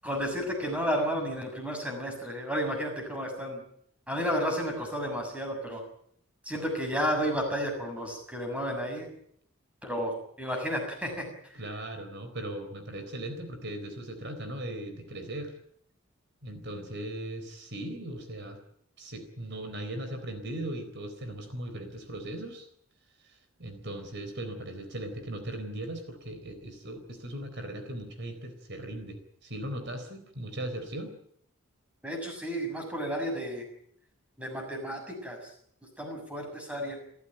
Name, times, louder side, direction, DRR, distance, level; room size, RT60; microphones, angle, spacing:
voice 1, 0.0-3.6 4.1-5.8 6.4-9.1 9.8-11.6 32.0-33.6 34.4-35.5 36.0-37.0, equal, 5° right, 3 dB, 6.7 m, -32 dB
voice 2, 11.5-15.6 16.4-18.6 19.0-22.7 23.2-31.1, right 1 dB, 55° right, 7 dB, 4.0 m, -38 dB
29.0 x 15.0 x 9.1 m, 0.67 s
head